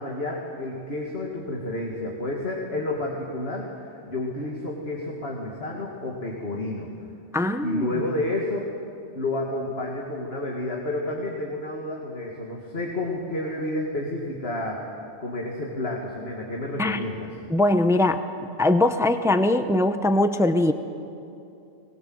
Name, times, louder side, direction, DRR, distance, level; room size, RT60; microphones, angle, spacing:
voice 1, 0.0-3.7 4.1-6.9 7.6-8.7 9.2-17.3, left 1 dB, 60° left, -1 dB, 2.4 m, -30 dB
voice 2, 7.3-7.9 16.8-17.0 17.5-20.7, left 1 dB, 5° right, 9 dB, 0.7 m, -21 dB
21.5 x 20.5 x 7.9 m, 2.7 s
omnidirectional pair, 1.2 m